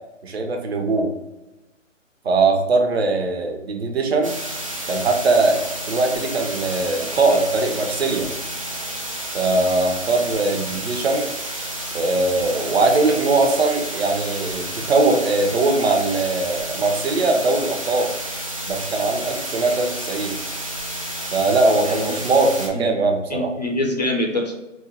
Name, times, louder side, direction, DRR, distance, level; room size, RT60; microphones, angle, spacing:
voice 1, 0.2-1.1 2.2-4.3 4.9-8.3 9.3-11.3 11.9-18.1 18.7-20.4 21.3-23.5, right 3 dB, 55° right, 3 dB, 0.8 m, -20 dB
sound 1, 4.2-22.7, right 1 dB, 30° right, 0.4 m, -31 dB
voice 2, 21.8-22.2 22.7-22.9 23.3-24.5, left 1 dB, 35° left, 1 dB, 0.4 m, -25 dB
4.4 x 2.2 x 4.2 m, 1.0 s
figure-of-eight pair, 150°, 39 cm